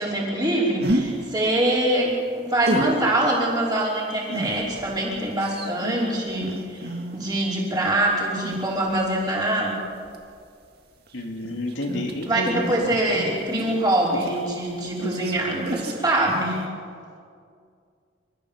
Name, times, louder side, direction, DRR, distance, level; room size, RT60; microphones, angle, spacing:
voice 1, 0.0-9.8 12.3-16.6, right 1 dB, 20° right, -5 dB, 5.3 m, -24 dB
sound 1, 0.8-1.1 2.6-3.0 4.3-7.4 8.4-9.2 10.0-10.3 11.1-14.7 15.0-15.3 15.6-16.0 16.3-16.4, right 1 dB, 50° right, 2.3 m, -31 dB
voice 2, 11.1-12.6, left 1 dB, 65° left, 1 dB, 2.6 m, -30 dB
28.5 x 14.5 x 7.4 m, 2.3 s
head